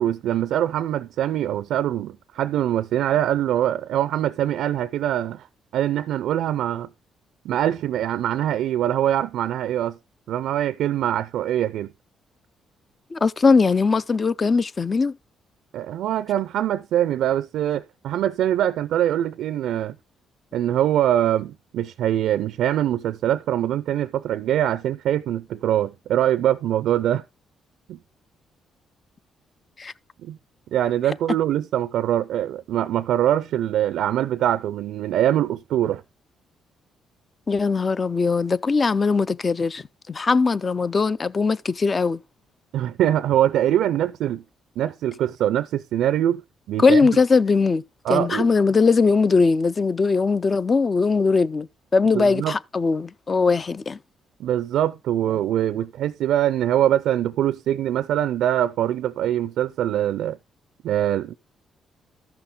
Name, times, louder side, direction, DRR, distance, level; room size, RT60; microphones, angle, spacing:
voice 1, 0.0-5.5 5.7-6.9 7.4-10.0 10.3-11.9 15.7-20.0 20.5-27.2 27.9-28.0 30.2-30.4 30.7-36.0 42.7-44.4 44.8-46.4 46.7-47.0 48.0-48.5 52.1-52.6 54.4-60.4 60.8-61.3, right 11 dB, 80° right, 0.4 m, -23 dB
voice 2, 13.1-15.1 29.8-29.9 37.5-39.8 40.1-42.2 46.8-47.8 48.1-51.7 51.9-54.0, left 4 dB, 35° left, 0.4 m, -20 dB
13.5 x 5.8 x 3.7 m
cardioid pair, 90°, 0 cm